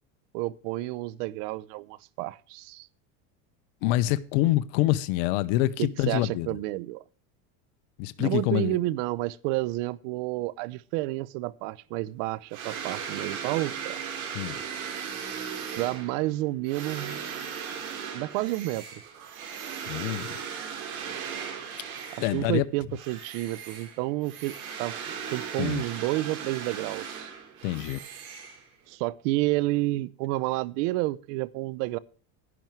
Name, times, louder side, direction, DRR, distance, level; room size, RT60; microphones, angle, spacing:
voice 1, 0.3-2.9 5.8-7.0 8.2-14.0 15.8-17.5 18.1-19.0 22.2-24.9 25.3-27.3 28.9-32.0, right 18 dB, 60° right, 0.9 m, -30 dB
voice 2, 3.8-6.5 8.0-8.8 14.3-14.6 19.9-20.3 22.2-22.6 25.6-25.8 27.6-28.0, left 16 dB, 60° left, 1.0 m, -26 dB
sound 1, 12.5-22.6 22.9-28.9, right 7 dB, 80° right, 4.4 m, -37 dB
11.0 x 10.5 x 4.6 m
supercardioid pair, 120°, 42 cm